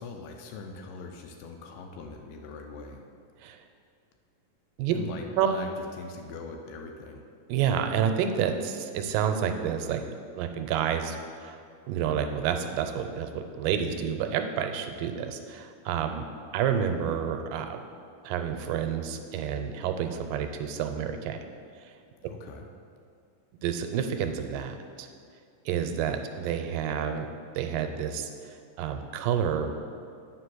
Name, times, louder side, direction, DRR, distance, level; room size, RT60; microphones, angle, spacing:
voice 1, 0.0-3.0 4.9-7.3 22.2-22.7, left 4 dB, 80° left, 3 dB, 2.3 m, -41 dB
voice 2, 7.5-10.0 10.4-11.6 11.9-16.2 16.5-17.8 18.2-21.4 21.8-21.9 23.6-25.1 25.7-27.3 27.6-29.7, right 8 dB, 90° right, 6 dB, 2.3 m, -29 dB
8.5 x 5.0 x 6.1 m, 2.4 s
omnidirectional pair, 3.9 m